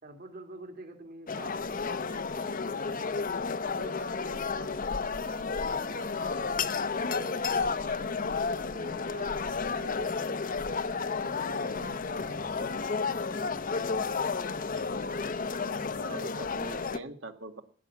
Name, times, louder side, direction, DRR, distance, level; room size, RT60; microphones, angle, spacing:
voice 1, 0.0-3.1 3.6-5.3 5.6-8.2 8.5-9.3 9.6-10.5 10.9-12.8, right 2 dB, 50° right, 4 dB, 2.3 m, -48 dB
sound 1, 1.3-17.0, left 4 dB, 45° left, 0.7 m, -32 dB
voice 2, 14.7-15.2 16.0-17.6, right 2 dB, 70° right, 6 dB, 1.9 m, -43 dB
14.5 x 10.5 x 7.2 m, 0.44 s
head